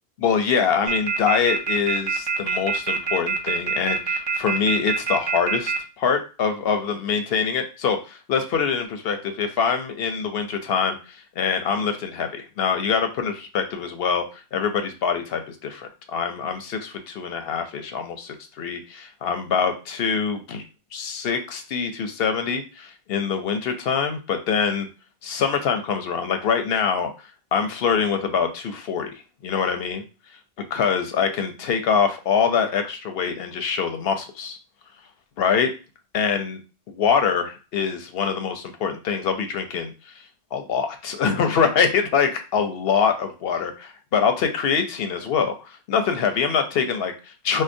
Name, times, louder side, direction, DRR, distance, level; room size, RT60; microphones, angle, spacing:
voice 1, 0.2-20.6 20.9-24.9 25.2-27.1 27.5-29.1 29.4-30.0 30.7-34.6 35.4-35.7 36.1-36.6 36.9-40.1 40.5-47.6, left 6 dB, 65° left, 6 dB, 0.7 m, -24 dB
sound 1, 0.9-5.8, right 5 dB, 45° right, 0.3 m, -24 dB
4.5 x 2.1 x 2.6 m, 0.32 s
omnidirectional pair, 1.2 m